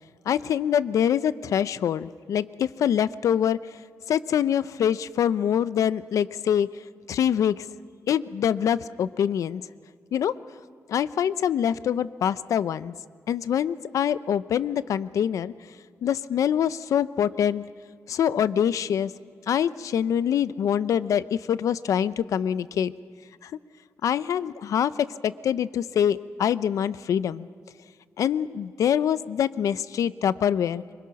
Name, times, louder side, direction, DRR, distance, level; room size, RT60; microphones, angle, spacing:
voice 1, 0.3-3.6 4.1-6.7 7.1-7.7 8.1-9.7 10.1-10.3 10.9-12.9 13.3-15.5 16.0-17.6 18.1-19.1 19.5-22.9 23.4-23.5 24.0-27.5 28.2-30.8, left 9 dB, 80° left, 16 dB, 0.6 m, -25 dB
25.5 x 24.0 x 5.8 m, 2.1 s
wide cardioid pair, 170°, 5 cm